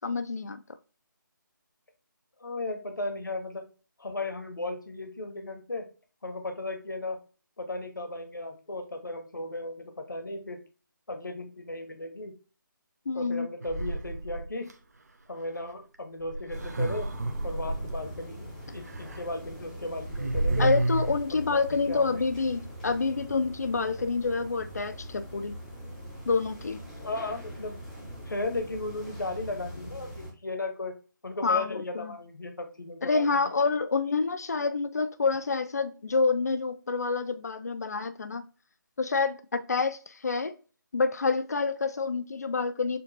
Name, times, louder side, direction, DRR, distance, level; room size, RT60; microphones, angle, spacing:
voice 1, 0.0-0.6 13.1-13.5 20.6-25.6 26.3-26.8 31.4-32.1 33.0-38.5 39.0-40.6 40.9-43.0, left 4 dB, 50° left, 0.5 m, -28 dB
voice 2, 2.4-3.7 4.0-5.9 6.2-7.2 7.6-10.6 11.1-12.3 13.1-14.7 15.3-17.1 17.4-18.5 18.7-20.7 21.3-21.6 21.9-22.1 27.0-27.8 28.2-30.9 31.2-33.4, left 2 dB, 70° left, 1.2 m, -35 dB
sound 1, 13.6-14.7 16.2-18.0 18.9-19.2 19.5-19.6 19.9-21.2, right 2 dB, 50° right, 0.7 m, -30 dB
sound 2, 16.5-30.3, equal, ahead, 0.7 m, -43 dB
6.7 x 2.6 x 2.5 m
figure-of-eight pair, 155°, 11 cm